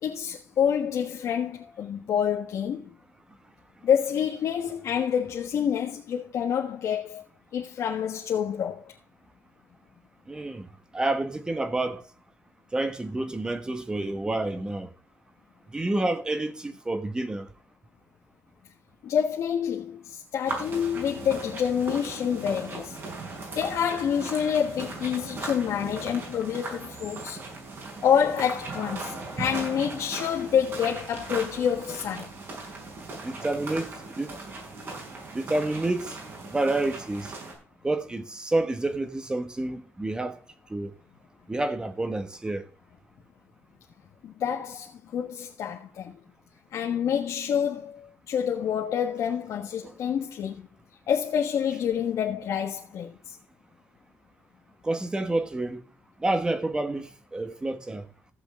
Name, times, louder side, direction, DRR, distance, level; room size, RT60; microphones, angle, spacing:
voice 1, 0.0-2.9 3.8-7.2 7.5-8.9 19.0-23.0 23.5-27.4 28.0-32.3 44.2-46.1 46.7-50.6 51.1-53.4, left 8 dB, 80° left, 1.4 m, -27 dB
voice 2, 10.3-10.7 10.9-12.0 12.7-14.9 15.7-17.5 33.2-33.9 34.1-34.3 35.3-36.2 36.5-37.3 37.8-40.4 40.7-40.9 41.5-42.7 49.8-49.9 54.8-55.8 56.2-58.0, right 2 dB, 15° right, 1.3 m, -29 dB
sound 1, 20.4-37.5, right 3 dB, 50° right, 5.9 m, -38 dB
15.0 x 8.1 x 3.7 m
wide cardioid pair, 155°, 5 cm